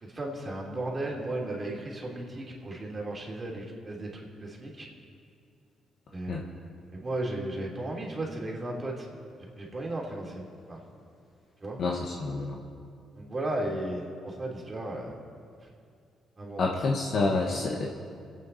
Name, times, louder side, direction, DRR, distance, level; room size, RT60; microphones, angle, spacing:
voice 1, 0.0-4.9 6.1-6.6 6.9-9.1 9.5-10.8 11.6-11.8 13.1-15.2 16.4-16.6, right 1 dB, 30° right, -2 dB, 3.1 m, -35 dB
voice 2, 11.8-12.6 16.6-17.9, left 3 dB, 60° left, -1 dB, 1.2 m, -28 dB
24.5 x 8.8 x 4.1 m, 2.4 s
cardioid pair, 90°, 0 cm